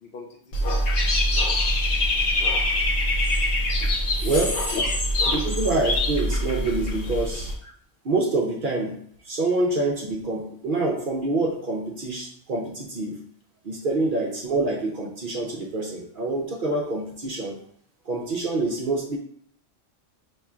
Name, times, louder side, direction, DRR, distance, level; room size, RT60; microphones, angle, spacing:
voice 1, 0.0-0.9 3.8-5.3 7.6-7.7 13.9-14.0, left 2 dB, 60° left, 1 dB, 0.6 m, -33 dB
Dog / Bird, 0.5-7.5, left 1 dB, 85° left, 1.1 m, -24 dB
voice 2, 4.2-4.7 5.3-7.5 8.0-9.0 9.2-13.2 13.6-17.6 18.1-19.2, right 2 dB, 55° right, 0 dB, 0.6 m, -26 dB
5.5 x 3.0 x 2.4 m, 0.62 s
omnidirectional pair, 1.3 m